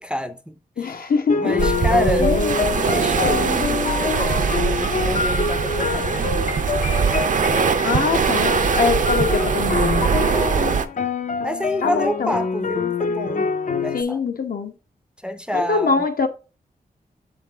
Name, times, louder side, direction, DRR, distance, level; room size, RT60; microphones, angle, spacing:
voice 1, 0.0-1.1 1.4-2.3 2.9-7.1 10.3-10.8 11.4-14.2 15.2-16.0, equal, 5° right, 0.4 m, -28 dB
voice 2, 0.8-1.6 2.2-2.6 7.8-10.1 11.8-12.3 13.9-14.7 15.5-16.3, left 5 dB, 75° left, 1.0 m, -23 dB
sound 1, 1.3-14.0, left 5 dB, 55° left, 0.6 m, -25 dB
sound 2, 1.6-10.8, right 6 dB, 55° right, 0.5 m, -21 dB
7.5 x 3.9 x 4.5 m
wide cardioid pair, 165°, 15 cm